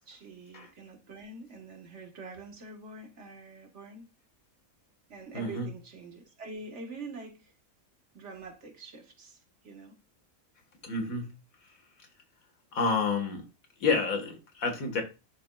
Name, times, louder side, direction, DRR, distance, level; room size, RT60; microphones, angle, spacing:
voice 1, 0.1-4.1 5.1-7.5 8.1-10.0, right 3 dB, 55° right, 1.6 m, -45 dB
voice 2, 5.3-5.7 10.8-11.3 11.6-11.8 12.7-13.4 13.8-15.0, left 4 dB, 80° left, 2.0 m, -29 dB
10.5 x 4.2 x 2.3 m
omnidirectional pair, 1.4 m